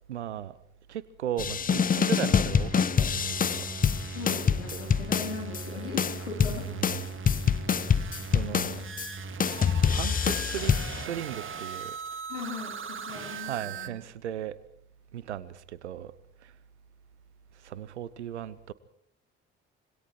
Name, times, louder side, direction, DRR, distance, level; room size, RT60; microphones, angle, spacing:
voice 1, 0.1-0.6 0.9-3.7 4.7-4.9 6.5-7.1 8.3-8.8 9.9-12.0 13.4-14.6 15.1-16.1 16.4-16.5 17.5-18.7, right 10 dB, 80° right, 1.0 m, -37 dB
sound 1, 1.4-5.6 6.0-9.1 9.4-11.1, left 7 dB, 25° left, 0.8 m, -26 dB
sound 2, 2.5-13.9, right 5 dB, 35° right, 2.1 m, -39 dB
voice 2, 4.1-6.7 12.3-13.9, left 4 dB, 80° left, 4.1 m, -39 dB
26.5 x 24.5 x 4.6 m
figure-of-eight pair, 50°, 34 cm